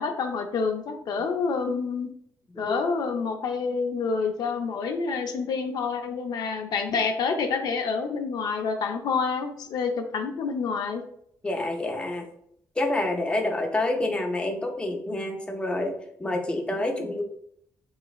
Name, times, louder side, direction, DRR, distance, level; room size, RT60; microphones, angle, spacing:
voice 1, 0.0-2.1 2.6-11.0, left 5 dB, 70° left, 5 dB, 0.4 m, -28 dB
voice 2, 11.4-12.3 12.8-17.2, left 2 dB, 15° left, 3 dB, 0.5 m, -28 dB
3.1 x 2.9 x 2.3 m, 0.69 s
cardioid pair, 85°, 7 cm